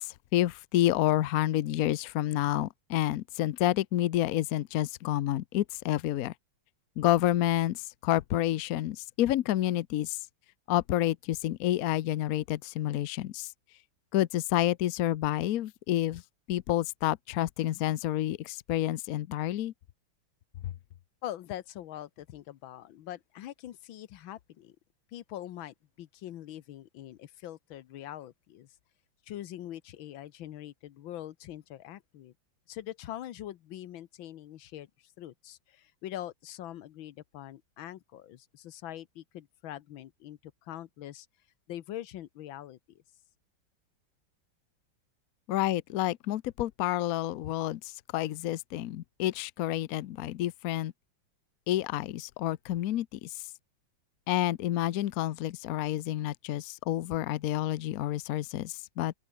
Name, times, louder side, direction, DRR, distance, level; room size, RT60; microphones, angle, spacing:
voice 1, 0.0-6.3 7.0-10.2 10.7-13.5 14.1-16.2 16.5-19.7 45.5-50.9 51.7-53.3 54.3-59.1, left 13 dB, 65° left, 0.9 m, -29 dB
voice 2, 21.2-24.8 25.1-28.7 29.3-32.3 32.7-41.3 41.7-43.0, left 12 dB, 90° left, 1.7 m, -43 dB
open air
omnidirectional pair, 2.1 m